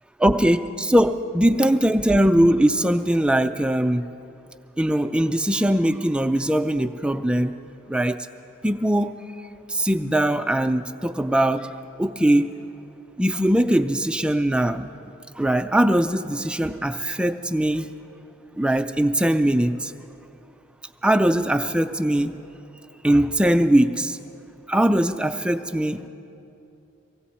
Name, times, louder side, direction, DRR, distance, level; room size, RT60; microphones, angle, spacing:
voice 1, 0.2-4.0 4.8-7.5 7.9-8.2 8.6-9.1 9.7-11.7 12.0-12.5 13.2-14.9 15.4-17.9 18.6-19.9 21.0-22.3 23.0-24.2 24.7-26.1, right 1 dB, 5° right, 8 dB, 0.3 m, -21 dB
18.0 x 16.0 x 4.3 m, 2.9 s
head